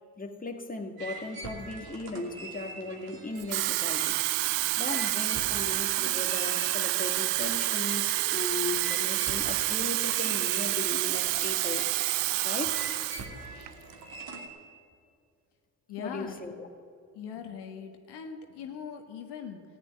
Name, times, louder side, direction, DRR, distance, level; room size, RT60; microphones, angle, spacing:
voice 1, 0.2-4.2 4.8-11.9 12.4-12.9 16.0-16.7, left 2 dB, 20° left, 3 dB, 1.8 m, -37 dB
sound 1, 1.0-14.5, right 3 dB, 55° right, 2.6 m, -44 dB
Water tap faucet / Fill (with liquid), 3.4-13.3 13.7-13.9, right 19 dB, 80° right, 0.6 m, -28 dB
voice 2, 15.9-16.4 17.1-19.6, left 7 dB, 70° left, 4 dB, 1.5 m, -41 dB
14.5 x 8.5 x 9.6 m, 2.3 s
hypercardioid pair, 60°, 42 cm